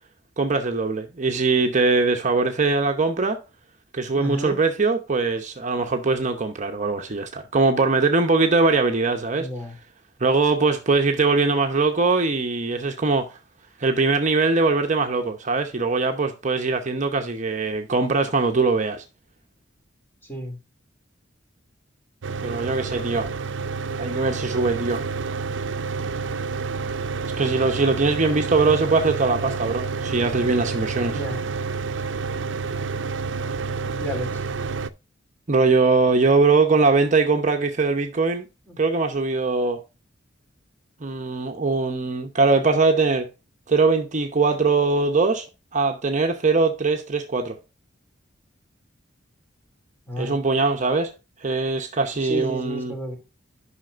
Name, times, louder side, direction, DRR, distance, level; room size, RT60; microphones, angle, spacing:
voice 1, 0.4-3.4 3.9-9.5 10.2-13.3 13.8-19.0 22.4-23.3 24.0-25.0 27.4-31.2 35.5-38.4 38.8-39.8 41.0-43.3 43.7-45.5 45.7-47.6 50.2-51.1 51.4-52.9, right 3 dB, 40° right, 0.8 m, -21 dB
voice 2, 4.1-4.6 9.4-9.7 20.2-20.6 31.1-31.4 34.0-34.4 38.7-38.8 50.1-50.3 52.2-53.2, equal, 10° left, 3.0 m, -31 dB
Mechanical fan, 22.2-34.9, right 4 dB, 80° right, 0.5 m, -29 dB
11.0 x 5.8 x 2.5 m
head